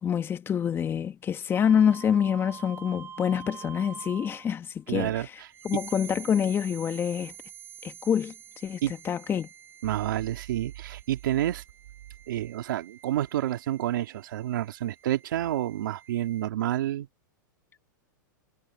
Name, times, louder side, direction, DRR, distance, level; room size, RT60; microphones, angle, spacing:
voice 1, 0.0-5.2 5.6-7.3 7.8-8.3 8.6-9.5, left 8 dB, 20° left, 1.6 m, -26 dB
sound 1, 1.5-4.6 5.4-16.5, right 8 dB, 20° right, 7.6 m, -47 dB
voice 2, 4.9-5.5 8.8-8.9 9.8-11.6 12.3-17.1, right 13 dB, 75° right, 2.9 m, -29 dB
hypercardioid pair, 135°, 11 cm